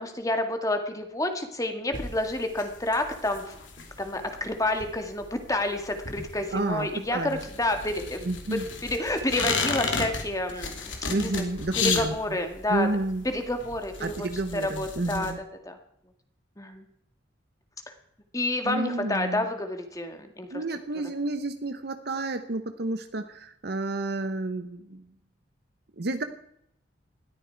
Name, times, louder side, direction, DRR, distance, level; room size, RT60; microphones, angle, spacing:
voice 1, 0.0-3.6 4.0-8.3 8.8-11.4 11.8-12.9 13.2-14.3 14.5-15.3 15.7-15.8 16.6-16.8 18.3-20.6, left 1 dB, 20° left, 6 dB, 1.9 m, -29 dB
sound 1, 1.9-15.3, left 5 dB, 80° left, 2.7 m, -34 dB
voice 2, 6.5-7.4 8.2-8.7 11.1-12.4 12.7-13.2 14.0-15.4 18.6-19.5 20.5-25.1 26.0-26.2, right 2 dB, 55° right, 8 dB, 0.9 m, -30 dB
20.0 x 13.5 x 4.6 m, 0.74 s
head